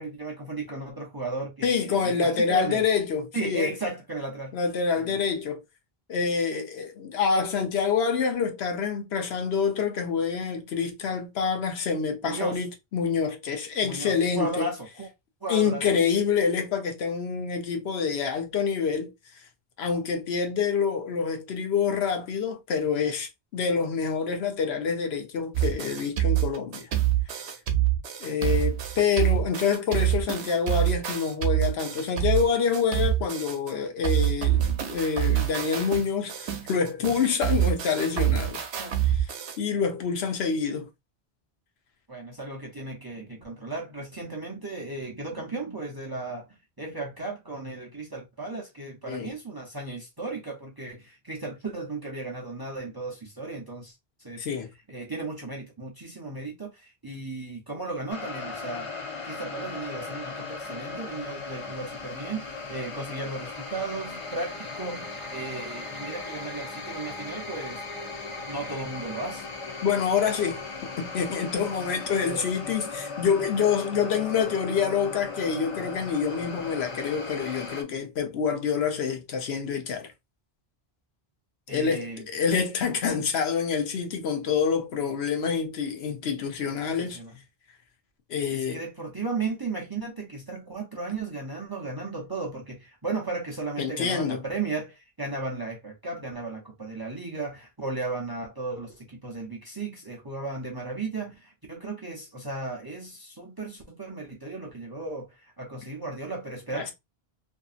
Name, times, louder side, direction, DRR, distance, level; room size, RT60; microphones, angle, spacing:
voice 1, 0.0-2.8 3.3-4.6 4.9-5.2 12.2-12.6 13.8-15.1 15.4-15.8 38.8-39.0 39.7-39.8 42.1-46.5 46.8-54.4 54.9-58.9 59.2-67.8 68.5-69.5 72.2-72.4 81.7-82.2 87.0-87.4 88.5-106.9, right 3 dB, 30° right, 0.5 m, -35 dB
voice 2, 1.6-3.7 4.5-5.6 6.1-14.7 15.5-19.1 19.8-26.9 28.2-38.6 39.1-39.3 39.6-40.9 49.1-49.3 54.4-54.7 69.8-70.6 71.0-80.1 81.7-87.2 88.3-88.8 93.8-94.4 106.7-106.9, left 6 dB, 80° left, 0.9 m, -27 dB
sound 1, 25.5-33.7 34.0-39.6, right 12 dB, 85° right, 0.9 m, -26 dB
sound 2, 58.1-77.8, left 3 dB, 40° left, 0.5 m, -37 dB
2.6 x 2.6 x 2.4 m
omnidirectional pair, 1.1 m